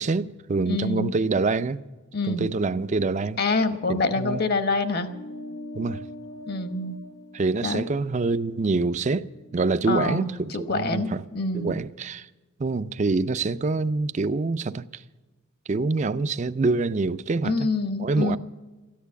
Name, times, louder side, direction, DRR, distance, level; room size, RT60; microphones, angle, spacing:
voice 1, 0.0-1.8 2.3-3.4 3.9-4.4 5.7-6.0 7.3-9.3 9.5-11.2 11.5-12.3 12.6-15.0 15.7-17.5 18.0-18.4, right 3 dB, 35° right, 0.4 m, -25 dB
voice 2, 0.7-1.1 2.1-2.5 3.4-5.1 6.5-7.0 7.6-7.9 9.9-11.8 17.4-18.4, left 3 dB, 50° left, 1.1 m, -26 dB
sound 1, 5.1-9.9, left 1 dB, 80° left, 0.9 m, -43 dB
14.0 x 10.5 x 8.4 m
head